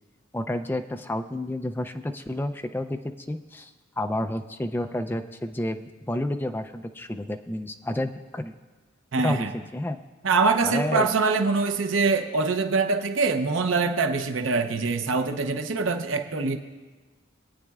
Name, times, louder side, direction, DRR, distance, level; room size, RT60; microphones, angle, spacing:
voice 1, 0.3-3.7 4.0-8.5 9.2-10.0 10.6-11.1, left 1 dB, 10° left, 7 dB, 0.4 m, -30 dB
voice 2, 9.1-9.5 10.2-16.6, right 4 dB, 80° right, 7 dB, 0.7 m, -24 dB
21.0 x 9.0 x 2.4 m, 1.3 s
head